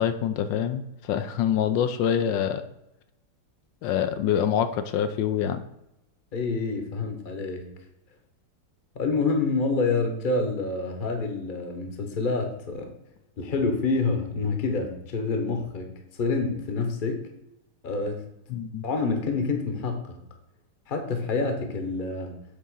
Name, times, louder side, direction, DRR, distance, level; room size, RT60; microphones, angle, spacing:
voice 1, 0.0-2.6 3.8-5.6 18.5-18.8, left 9 dB, 80° left, 9 dB, 1.3 m, -25 dB
voice 2, 6.3-7.7 8.9-12.9 13.4-15.9 16.2-17.2 17.8-18.2 18.8-20.2 20.9-22.4, left 3 dB, 35° left, 5 dB, 1.0 m, -27 dB
8.3 x 3.7 x 5.5 m, 0.86 s
omnidirectional pair, 2.0 m